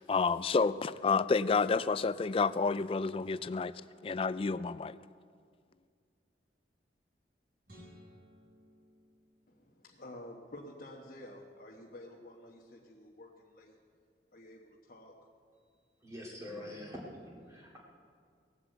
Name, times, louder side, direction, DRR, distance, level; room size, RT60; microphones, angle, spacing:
voice 1, 0.0-3.7 4.0-5.0, left 4 dB, 30° left, 16 dB, 0.3 m, -29 dB
sound 1, 7.6-10.0, equal, 60° right, 4.0 m, -58 dB
voice 2, 9.5-13.8 14.3-15.2, left 1 dB, 55° left, -2 dB, 1.2 m, -50 dB
voice 3, 16.0-17.8, left 1 dB, 15° right, -5 dB, 2.4 m, -45 dB
18.0 x 8.0 x 7.9 m, 2.2 s
head